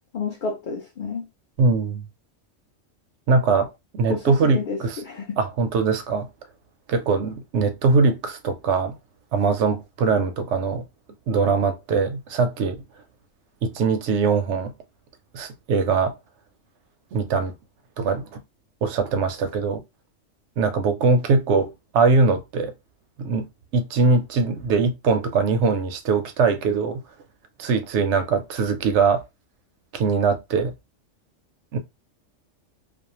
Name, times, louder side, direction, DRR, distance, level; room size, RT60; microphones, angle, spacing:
voice 1, 0.1-1.3 4.1-5.4, left 4 dB, 60° left, 0.5 m, -30 dB
voice 2, 1.6-2.1 3.3-5.0 5.4-6.3 6.9-9.0 9.3-10.9 11.3-12.8 13.6-14.7 15.3-16.1 17.1-17.6 18.0-18.4 18.8-19.8 20.6-22.7 23.2-23.5 23.7-27.0 27.6-29.2 29.9-30.7 31.7-31.8, right 4 dB, 70° right, 0.8 m, -22 dB
2.6 x 2.1 x 2.8 m
omnidirectional pair, 1.3 m